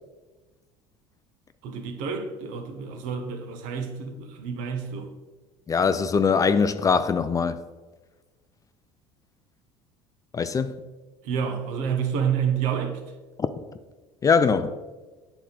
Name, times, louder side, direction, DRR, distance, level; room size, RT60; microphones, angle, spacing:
voice 1, 1.6-5.1 11.2-13.0, right 7 dB, 70° right, 0.9 m, -29 dB
voice 2, 5.7-7.6 10.3-10.8 13.4-13.5 14.2-14.7, left 5 dB, 25° left, 0.4 m, -22 dB
8.4 x 3.9 x 3.9 m
supercardioid pair, 80°, 14 cm